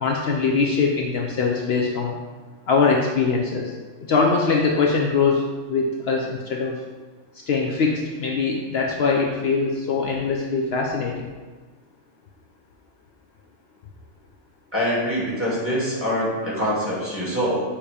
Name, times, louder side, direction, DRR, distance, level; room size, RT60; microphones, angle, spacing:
voice 1, 0.0-2.2 2.7-3.7 4.0-6.8 7.3-11.3, left 4 dB, 65° left, -1 dB, 0.8 m, -22 dB
voice 2, 14.7-17.6, equal, 10° right, -7 dB, 1.8 m, -24 dB
7.2 x 2.8 x 5.0 m, 1.3 s
omnidirectional pair, 1.3 m